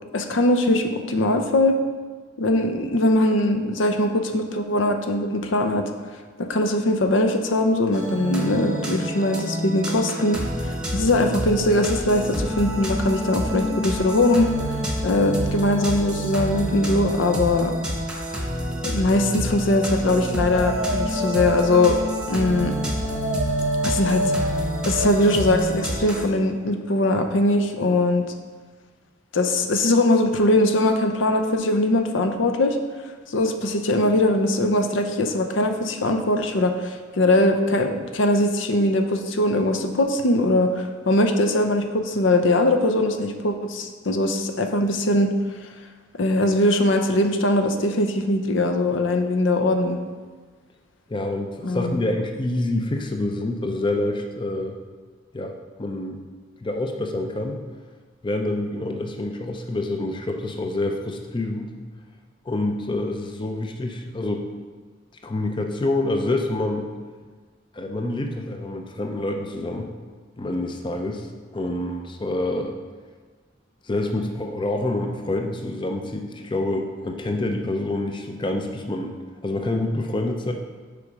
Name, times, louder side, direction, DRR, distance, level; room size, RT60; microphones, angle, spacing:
voice 1, 0.1-1.8 2.4-5.9 6.4-14.5 15.0-17.7 18.8-22.0 22.3-22.8 23.8-24.3 24.9-28.2 29.3-32.8 33.3-45.3 46.2-50.0 51.6-52.0, left 1 dB, 70° left, 6 dB, 0.6 m, -21 dB
sound 1, 7.9-26.2, equal, 5° right, 1.0 m, -28 dB
Dog, 19.9-25.5, equal, 85° right, 0.8 m, -29 dB
voice 2, 51.1-54.8 55.3-55.5 55.8-56.2 56.6-57.6 58.2-61.7 62.5-64.5 65.2-66.9 67.7-69.9 70.4-71.3 71.5-72.7 73.8-80.5, left 2 dB, 25° left, 4 dB, 0.5 m, -27 dB
6.8 x 5.1 x 4.8 m, 1.4 s
head